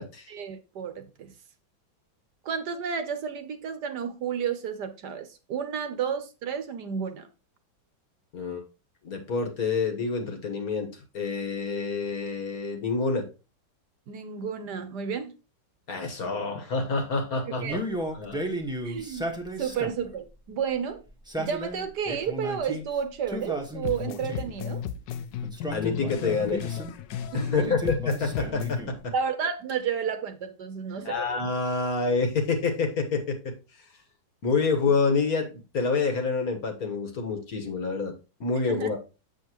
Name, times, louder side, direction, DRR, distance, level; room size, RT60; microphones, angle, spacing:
voice 1, 0.3-1.3 2.4-7.3 14.1-15.3 17.6-17.7 18.8-19.3 19.6-21.0 21.4-24.8 27.3-27.8 29.1-31.2 38.7-38.9, right 7 dB, 65° right, 1.3 m, -31 dB
voice 2, 9.0-13.3 15.9-17.8 18.1-18.4 25.7-26.6 27.3-29.1 31.0-33.8 34.4-39.0, left 4 dB, 50° left, 1.7 m, -28 dB
Male speech man speaking, 17.6-20.1 21.1-22.8 23.3-24.6 25.4-26.9 27.5-29.0, right 1 dB, 5° right, 1.1 m, -34 dB
sound 1, 23.8-27.6 27.8-28.8, left 9 dB, 70° left, 1.3 m, -34 dB
7.6 x 7.1 x 3.0 m
omnidirectional pair, 2.1 m